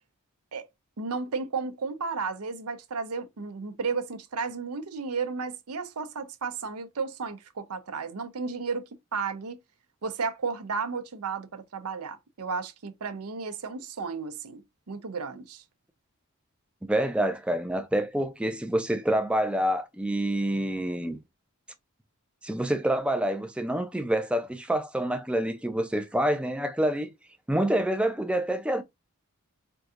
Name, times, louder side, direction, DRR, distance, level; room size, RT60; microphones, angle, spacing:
voice 1, 1.0-9.6 10.0-14.6 14.9-15.6, right 5 dB, 85° right, 0.7 m, -33 dB
voice 2, 16.8-21.2 22.4-27.1 27.5-28.8, right 1 dB, 5° right, 0.4 m, -27 dB
4.5 x 2.7 x 2.4 m
head